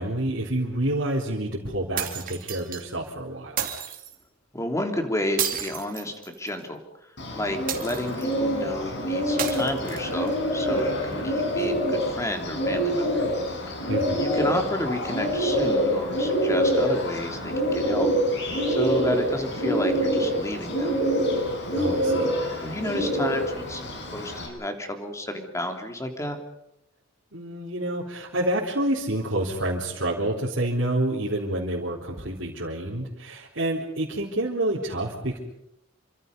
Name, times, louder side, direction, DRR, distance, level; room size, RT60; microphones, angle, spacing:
voice 1, 0.0-3.7 13.9-14.3 21.7-22.3 27.3-35.4, right 1 dB, 65° right, -5 dB, 3.8 m, -28 dB
sound 1, 2.0-2.8 3.6-4.1 5.4-6.6 7.7-8.3 9.4-10.3, right 8 dB, 45° right, 3.1 m, -31 dB
voice 2, 4.5-6.8 7.3-13.2 13.7-13.9 14.2-18.1 18.7-21.0 22.6-26.4, left 1 dB, 15° left, 5 dB, 3.2 m, -31 dB
Bird, 7.2-24.5, equal, 60° left, 6.5 m, -26 dB
28.5 x 25.5 x 5.4 m, 0.82 s
head